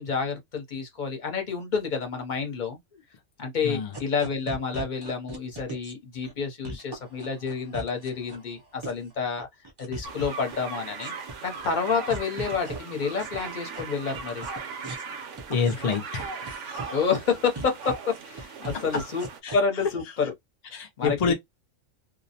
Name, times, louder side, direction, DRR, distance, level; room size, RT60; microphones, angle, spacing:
voice 1, 0.0-2.8 3.4-9.5 9.8-11.1 11.4-14.5 16.9-19.3 19.5-20.3 20.7-21.3, left 5 dB, 45° left, 0.8 m, -29 dB
sound 1, 3.9-5.9 6.2-6.3 6.6-8.4 8.8-9.1 9.4-10.5 10.8-11.6 11.9-12.8 13.2-13.8 14.1-14.6 14.8-15.0 15.4-16.8 17.1-17.2 17.5-19.5, right 2 dB, 35° right, 0.4 m, -37 dB
sound 2, 10.0-19.4, right 5 dB, 75° right, 0.9 m, -39 dB
voice 2, 15.5-16.9 19.4-19.6 20.7-21.3, left 5 dB, 60° left, 0.4 m, -28 dB
2.3 x 2.0 x 2.7 m
omnidirectional pair, 1.3 m